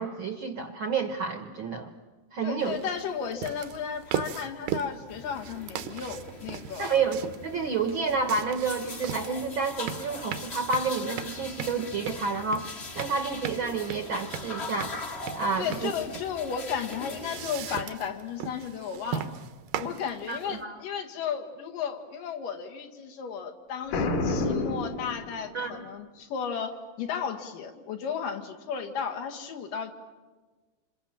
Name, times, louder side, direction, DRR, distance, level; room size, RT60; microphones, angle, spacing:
voice 1, 0.0-1.9 2.3-2.8 6.8-14.9 15.3-15.9 20.3-20.8 25.5-25.8, right 4 dB, 60° right, 7 dB, 1.3 m, -30 dB
voice 2, 2.4-7.0 15.6-19.4 19.8-29.9, left 7 dB, 85° left, 5 dB, 3.6 m, -34 dB
sound 1, 2.6-20.6, right 9 dB, 80° right, 2.7 m, -38 dB
sound 2, 5.1-17.8, left 3 dB, 40° left, 0.9 m, -41 dB
Boom, 23.9-25.8, left 2 dB, 70° left, 3.2 m, -29 dB
27.5 x 27.0 x 7.3 m, 1.3 s
omnidirectional pair, 3.8 m